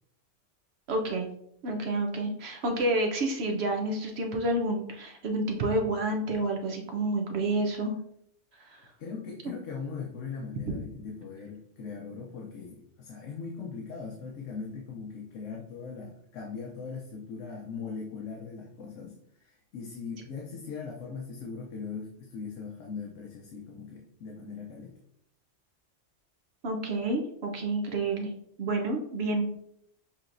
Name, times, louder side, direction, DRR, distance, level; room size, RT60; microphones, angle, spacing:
voice 1, 0.9-1.3 1.6-7.9 8.7-8.8 26.6-28.3 28.6-29.6, right 2 dB, 60° right, 2 dB, 0.9 m, -29 dB
voice 2, 9.0-25.0, left 5 dB, 80° left, -1 dB, 1.1 m, -40 dB
7.0 x 3.0 x 2.5 m, 0.71 s
omnidirectional pair, 1.3 m